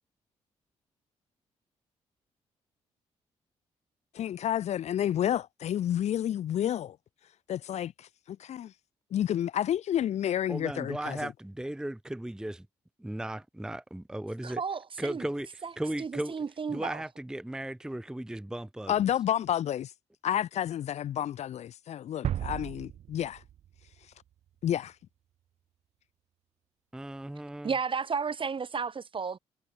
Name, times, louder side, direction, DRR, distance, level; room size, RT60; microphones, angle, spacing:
voice 1, 4.1-7.0 7.5-8.7 9.1-11.2 18.9-19.9 20.2-23.4 24.6-24.9, left 10 dB, 60° left, 0.5 m, -30 dB
voice 2, 10.5-12.7 13.0-14.6 15.0-16.3 16.7-18.9 26.9-27.7, right 1 dB, 5° right, 0.6 m, -36 dB
voice 3, 14.4-15.2 15.6-15.7 16.0-17.0 27.6-29.4, right 5 dB, 45° right, 1.6 m, -33 dB
sound 1, 22.2-24.1, right 11 dB, 60° right, 0.5 m, -35 dB
supercardioid pair, 55°, 13 cm